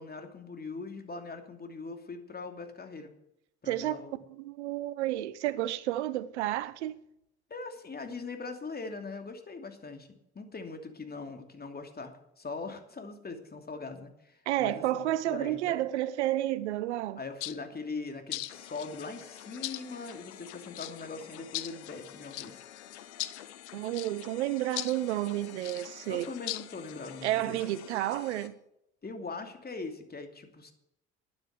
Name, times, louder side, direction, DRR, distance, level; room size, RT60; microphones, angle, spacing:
voice 1, 0.0-3.1 3.6-4.1 7.5-10.1 10.3-15.8 17.2-22.6 26.1-27.6 29.0-30.7, left 4 dB, 30° left, 2.8 m, -41 dB
voice 2, 3.7-4.0 4.4-7.0 14.5-17.2 23.7-26.3 27.2-28.5, right 14 dB, 85° right, 0.7 m, -31 dB
sound 1, 17.4-17.6 18.3-18.9 19.6-19.8 20.7-21.0 21.5-21.7 22.3-22.5 23.2-23.4 23.9-24.1 24.8-25.0 25.6-25.8 26.5-26.7, left 17 dB, 65° left, 0.8 m, -36 dB
sound 2, 18.5-28.5, left 11 dB, 85° left, 1.2 m, -49 dB
12.0 x 9.8 x 7.6 m
hypercardioid pair, 55°, 33 cm